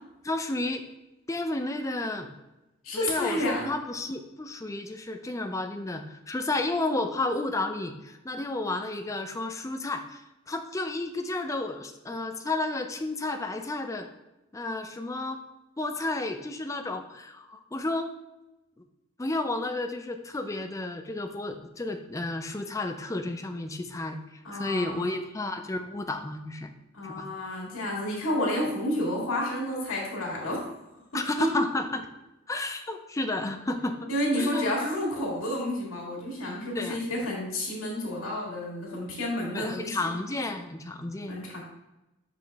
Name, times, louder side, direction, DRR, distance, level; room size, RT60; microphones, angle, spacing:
voice 1, 0.2-0.8 1.3-2.3 2.9-10.2 10.5-14.1 14.5-15.4 15.8-18.1 19.2-24.2 24.5-26.7 27.1-27.3 31.1-32.1 32.5-34.1 34.4-34.7 36.7-37.0 39.5-41.4, left 2 dB, 15° left, 6 dB, 0.4 m, -32 dB
voice 2, 2.8-3.7 24.4-25.1 26.9-30.6 31.4-31.5 34.1-40.1 41.3-41.6, left 1 dB, 90° left, -3 dB, 2.0 m, -30 dB
5.8 x 5.0 x 3.4 m, 0.97 s
head